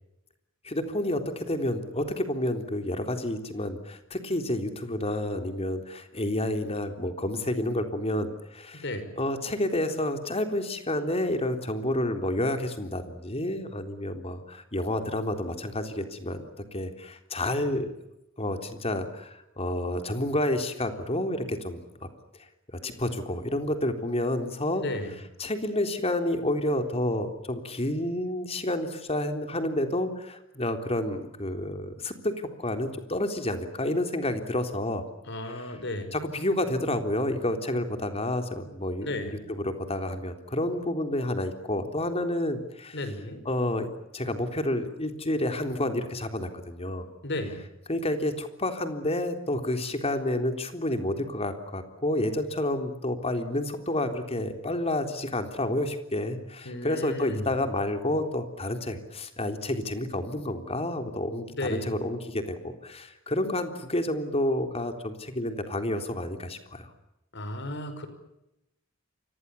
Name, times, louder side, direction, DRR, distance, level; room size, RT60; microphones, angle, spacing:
voice 1, 0.6-8.8 9.2-16.4 16.7-17.9 18.4-22.1 22.8-24.8 25.4-32.3 32.6-35.0 35.5-35.8 36.1-43.0 43.5-43.9 44.1-47.1 47.9-66.9, left 1 dB, 30° left, 6 dB, 3.7 m, -29 dB
voice 2, 8.7-9.1 24.8-25.2 35.3-36.2 39.0-39.4 42.9-43.4 47.2-47.6 56.7-57.5 61.6-61.9 67.3-68.1, left 1 dB, 60° left, 10 dB, 5.5 m, -34 dB
29.5 x 25.5 x 7.2 m, 0.88 s
head